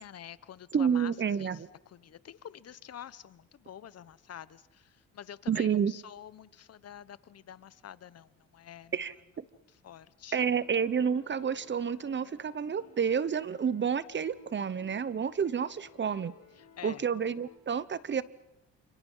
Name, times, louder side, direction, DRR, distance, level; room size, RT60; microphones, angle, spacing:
voice 1, 0.0-1.1 1.4-8.9 9.7-10.4 16.6-17.1, left 10 dB, 55° left, 17 dB, 1.1 m, -48 dB
voice 2, 0.7-1.7 5.5-5.9 8.9-9.4 10.3-16.4 16.8-18.2, right 7 dB, 40° right, 18 dB, 1.0 m, -29 dB
sound 1, 10.4-17.6, left 8 dB, 70° left, 6.6 m, -57 dB
29.0 x 27.5 x 5.7 m, 0.89 s
cardioid pair, 90°, 30 cm